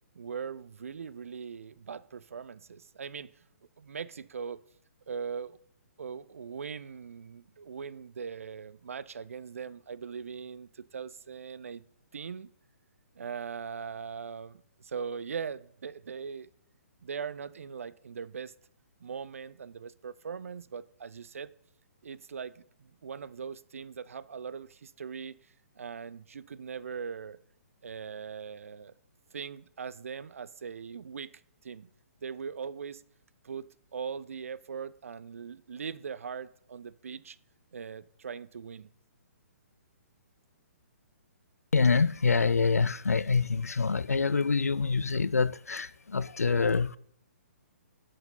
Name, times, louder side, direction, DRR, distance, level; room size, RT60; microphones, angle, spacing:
voice 1, 0.1-3.3 3.8-4.6 5.1-5.6 6.0-11.8 12.1-12.5 13.2-16.5 17.0-18.5 19.0-21.5 22.0-25.4 25.8-27.4 27.8-28.9 29.3-31.3 31.6-31.9 32.2-33.0 33.4-37.4 37.7-38.9, right 6 dB, 65° right, 0.4 m, -40 dB
voice 2, 41.7-47.0, left 4 dB, 80° left, 0.3 m, -26 dB
6.7 x 5.8 x 5.3 m
figure-of-eight pair, 125°, 8 cm